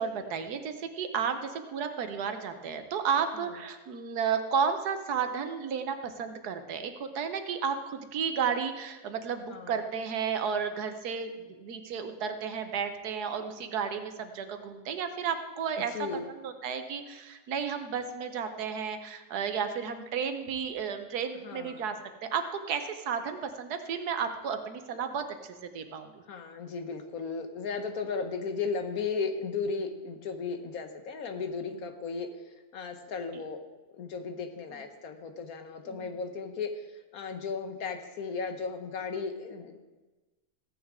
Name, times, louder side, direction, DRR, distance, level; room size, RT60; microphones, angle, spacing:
voice 1, 0.0-16.1 16.4-26.1 35.9-36.1, right 6 dB, 85° right, 8 dB, 1.5 m, -33 dB
voice 2, 9.5-9.9 15.9-16.3 21.4-21.9 26.3-33.6 33.9-39.8, left 5 dB, 70° left, 7 dB, 1.5 m, -35 dB
16.0 x 9.5 x 3.7 m, 1.2 s
omnidirectional pair, 1.6 m